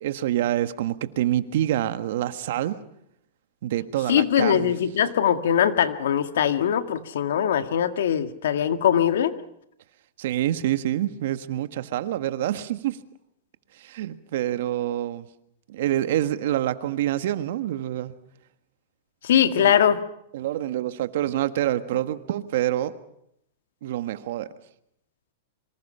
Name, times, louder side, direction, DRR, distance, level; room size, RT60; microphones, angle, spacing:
voice 1, 0.0-2.8 3.6-4.8 10.2-13.0 13.8-15.3 15.7-18.1 19.5-19.8 20.3-22.9 23.8-24.5, right 12 dB, 65° right, 11 dB, 1.6 m, -26 dB
voice 2, 4.1-9.3 19.2-20.0, left 9 dB, 80° left, 9 dB, 2.0 m, -21 dB
26.5 x 25.0 x 5.7 m, 0.74 s
hypercardioid pair, 135°, 0 cm